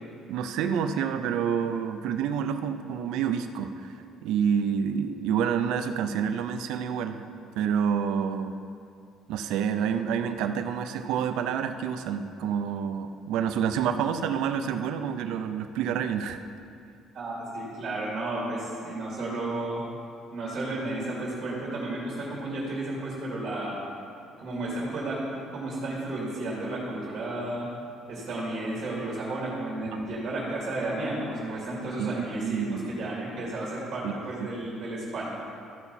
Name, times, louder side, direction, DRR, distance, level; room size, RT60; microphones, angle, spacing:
voice 1, 0.3-3.9 4.2-7.3 7.6-8.5 9.3-16.4 29.9-30.0 32.0-32.9 34.0-34.5, right 7 dB, 75° right, 8 dB, 0.5 m, -28 dB
voice 2, 17.1-19.8 20.3-23.8 24.4-27.7 28.1-35.3, right 2 dB, 40° right, -6 dB, 2.5 m, -32 dB
14.5 x 5.8 x 4.2 m, 2.4 s
cardioid pair, 165°, 0 cm